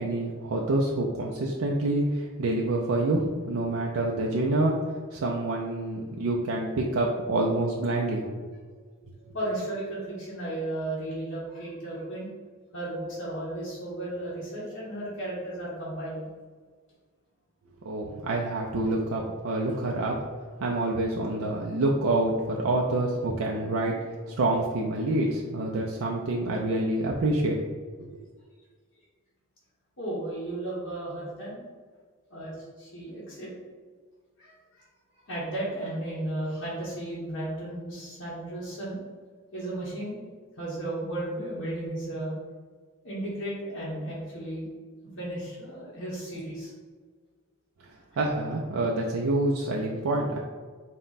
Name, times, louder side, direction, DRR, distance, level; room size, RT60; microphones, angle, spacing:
voice 1, 0.0-4.8 5.1-8.5 17.8-20.2 20.6-24.0 24.2-27.6 28.0-28.1 48.2-50.4, right 2 dB, 85° right, -2 dB, 0.4 m, -27 dB
voice 2, 9.3-12.3 12.7-16.3 19.7-19.8 30.0-31.6 32.3-33.5 34.4-34.8 35.3-39.0 39.5-40.2 40.6-42.3 43.0-44.6 45.2-46.7, right 1 dB, 70° left, -9 dB, 1.1 m, -34 dB
4.4 x 2.1 x 3.9 m, 1.5 s
head